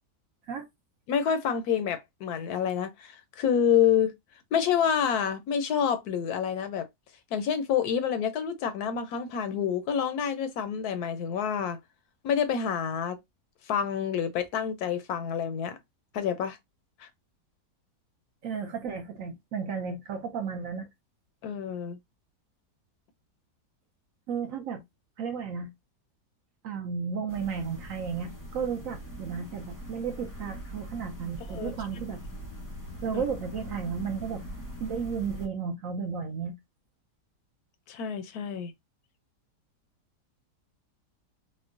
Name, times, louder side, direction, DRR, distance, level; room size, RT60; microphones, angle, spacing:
voice 1, 1.1-4.1 4.5-6.9 7.3-11.8 12.2-13.2 13.7-15.8 16.1-16.6 17.0-17.1 21.4-22.0 31.5-31.7 33.1-33.2 37.9-38.7, left 8 dB, 70° left, 1.0 m, -28 dB
voice 2, 18.4-20.9 24.3-24.8 25.2-25.7 26.6-32.2 33.0-34.4 34.8-36.6, right 6 dB, 70° right, 0.8 m, -33 dB
sound 1, 27.3-35.5, equal, 20° left, 0.5 m, -42 dB
4.4 x 2.1 x 2.5 m
omnidirectional pair, 1.8 m